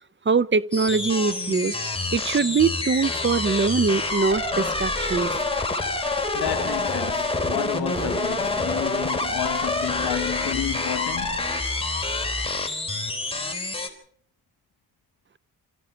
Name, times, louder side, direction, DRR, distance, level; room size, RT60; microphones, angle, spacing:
voice 1, 0.3-1.8 2.1-5.3, right 4 dB, 30° right, 0.8 m, -22 dB
sound 1, 0.7-13.9, left 2 dB, 15° left, 4.0 m, -27 dB
voice 2, 6.3-11.5, left 10 dB, 80° left, 1.4 m, -31 dB
25.5 x 15.0 x 7.3 m
cardioid pair, 70°, 38 cm